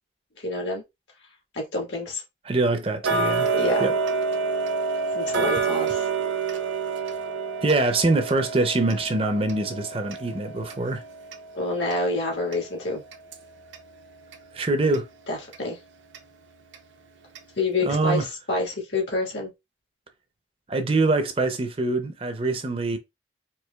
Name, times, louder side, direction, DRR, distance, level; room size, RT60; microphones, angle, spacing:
voice 1, 0.4-0.8 1.5-2.2 3.5-3.8 5.1-6.1 11.5-13.0 15.3-15.8 17.6-18.2 18.5-19.5, left 2 dB, 75° left, 1.6 m, -27 dB
voice 2, 2.5-3.5 3.8-3.9 7.6-11.0 14.5-15.1 17.9-18.3 20.7-23.0, right 2 dB, 30° right, 0.5 m, -24 dB
Tick-tock, 3.0-13.9 14.3-14.4 14.9-15.0 15.5-15.6 16.1-16.2 16.7-16.8 17.4-17.5 17.9-18.0, right 4 dB, 85° right, 0.7 m, -28 dB
4.5 x 2.7 x 2.2 m
head